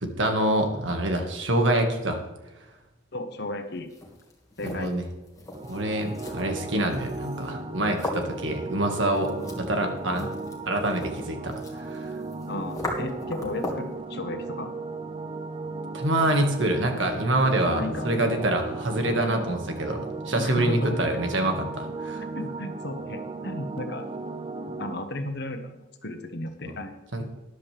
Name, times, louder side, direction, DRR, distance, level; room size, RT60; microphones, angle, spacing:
voice 1, 0.0-2.2 4.6-5.0 5.6-9.3 9.6-10.3 10.7-12.2 15.9-22.2 27.1-27.2, right 1 dB, 80° right, 4 dB, 1.9 m, -26 dB
voice 2, 3.1-3.9 4.6-4.9 12.5-14.7 17.6-18.1 20.4-21.2 22.3-24.1 24.8-26.9, left 1 dB, 60° left, 7 dB, 1.4 m, -34 dB
sound 1, 3.8-14.0, left 2 dB, 20° left, 2.1 m, -39 dB
sound 2, 5.5-24.9, right 3 dB, 25° right, 0.7 m, -36 dB
13.5 x 10.5 x 3.5 m, 1.1 s
head